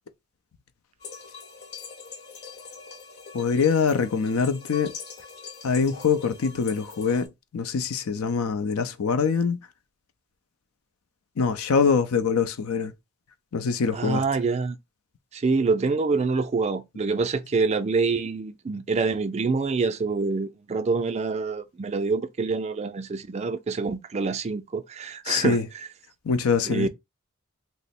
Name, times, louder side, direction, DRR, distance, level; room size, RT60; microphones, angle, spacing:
sound 1, 1.0-7.3, left 5 dB, 50° left, 0.9 m, -43 dB
voice 1, 3.3-4.9 5.6-9.6 11.4-12.9 13.5-14.2 25.3-25.7 26.2-26.9, left 5 dB, 90° left, 0.5 m, -24 dB
voice 2, 13.9-14.8 15.3-25.6 26.7-26.9, right 4 dB, 30° right, 0.3 m, -26 dB
3.1 x 2.0 x 4.1 m
head